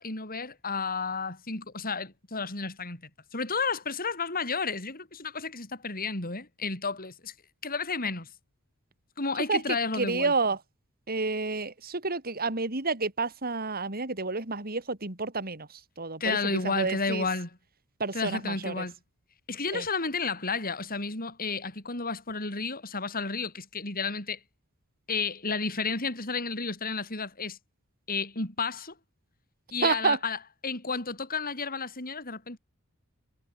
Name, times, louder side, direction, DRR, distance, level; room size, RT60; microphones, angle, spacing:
voice 1, 0.0-3.0 3.3-7.3 7.6-8.3 9.2-10.5 16.2-17.6 18.1-18.9 19.5-24.4 25.1-27.6 28.1-28.9 29.7-32.6, left 4 dB, 40° left, 6.5 m, -32 dB
voice 2, 9.5-10.6 11.1-15.7 16.0-16.4 16.6-17.3 18.0-18.8 19.7-19.8 29.8-30.2, right 4 dB, 45° right, 3.6 m, -29 dB
head